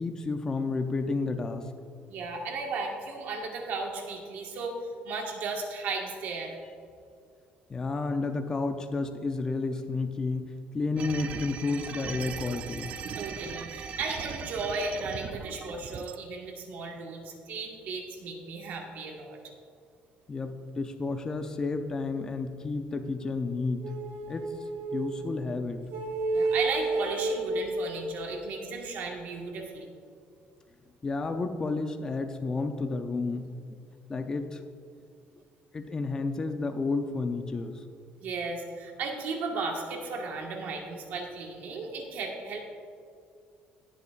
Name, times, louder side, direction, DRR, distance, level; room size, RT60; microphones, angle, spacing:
voice 1, 0.0-1.6 7.7-12.9 20.3-23.8 24.3-24.4 24.9-25.8 31.0-33.5 34.1-34.6 35.7-37.8, left 3 dB, 20° left, 6 dB, 0.5 m, -31 dB
voice 2, 2.1-4.7 5.0-6.5 10.9-11.1 13.1-19.4 26.3-29.9 38.2-42.6, right 4 dB, 55° right, 1 dB, 1.6 m, -35 dB
sound 1, 11.0-16.2, right 6 dB, 35° right, 0.4 m, -39 dB
sound 2, 23.8-25.4 25.9-28.7, right 2 dB, 75° right, 1.3 m, -31 dB
17.0 x 8.2 x 2.5 m, 2.3 s
cardioid pair, 170°, 4 cm